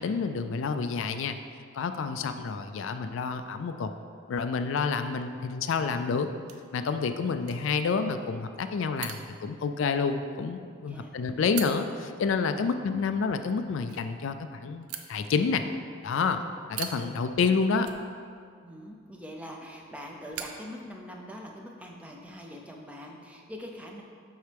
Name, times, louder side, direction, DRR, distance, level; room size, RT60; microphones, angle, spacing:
voice 1, 0.0-1.4 1.7-3.9 4.3-6.3 6.7-11.9 12.2-15.6 16.0-16.4 16.8-17.9, left 5 dB, 65° left, 8 dB, 0.3 m, -28 dB
sound 1, 1.9-21.5, right 8 dB, 90° right, 0.5 m, -47 dB
voice 2, 10.9-11.7 12.5-12.8 16.4-16.5 18.6-24.0, equal, 5° right, 0 dB, 0.5 m, -44 dB
7.9 x 5.5 x 3.4 m, 2.2 s
head